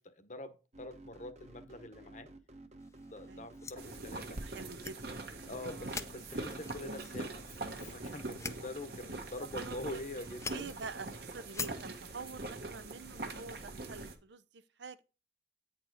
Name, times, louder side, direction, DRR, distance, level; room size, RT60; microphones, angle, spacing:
voice 1, 0.0-2.3 3.0-4.5 5.5-10.7, left 2 dB, 45° left, 1.0 m, -45 dB
sound 1, 0.7-13.0, right 2 dB, 40° right, 1.0 m, -56 dB
sound 2, 2.8-12.0, left 5 dB, 15° left, 0.5 m, -48 dB
sound 3, 3.8-14.1, right 2 dB, 60° right, 1.2 m, -43 dB
voice 2, 4.2-5.3 5.6-6.0 9.4-10.0 10.4-15.0, right 4 dB, 85° right, 0.7 m, -47 dB
8.9 x 4.4 x 4.6 m
head